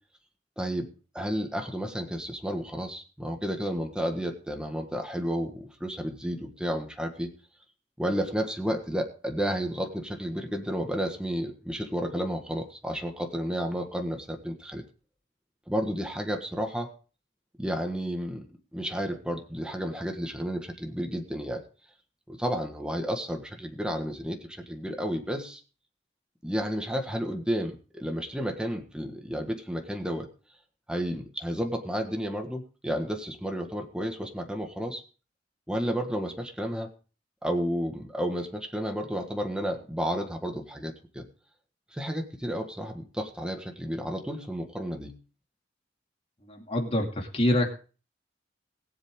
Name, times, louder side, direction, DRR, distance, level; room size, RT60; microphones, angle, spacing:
voice 1, 0.6-7.3 8.0-14.8 15.7-16.9 17.6-18.5 18.7-21.6 22.3-25.6 26.4-30.3 30.9-35.0 35.7-36.9 37.4-41.3 41.9-45.2, equal, 5° right, 3 dB, 1.6 m, -32 dB
voice 2, 46.5-47.7, left 1 dB, 35° left, 1 dB, 2.7 m, -26 dB
21.0 x 7.6 x 3.7 m, 0.37 s
head